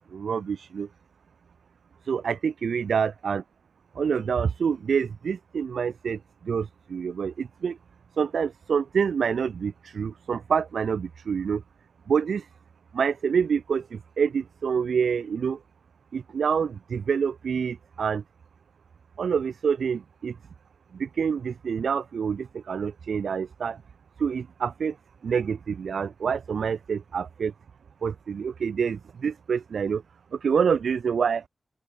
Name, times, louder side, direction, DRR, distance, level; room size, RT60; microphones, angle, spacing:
voice 1, 0.1-0.9 2.1-3.4 4.0-6.2 6.4-7.8 8.2-11.6 12.1-12.4 12.9-15.6 16.1-18.2 19.2-20.3 21.0-23.8 24.2-24.9 25.2-27.5 28.0-30.0 30.4-31.4, right 6 dB, 85° right, 0.8 m, -27 dB
open air
wide cardioid pair, 145°, 0 cm